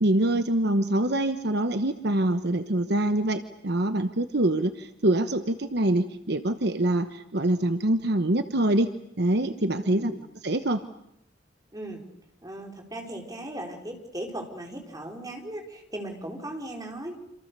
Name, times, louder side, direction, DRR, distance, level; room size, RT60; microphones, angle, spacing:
voice 1, 0.0-8.9 9.2-10.2 10.4-10.8, right 1 dB, 60° right, 9 dB, 1.1 m, -25 dB
voice 2, 9.8-10.2 11.7-12.0 12.4-17.1, right 1 dB, 20° right, 2 dB, 4.4 m, -37 dB
27.5 x 27.0 x 6.8 m, 0.76 s
head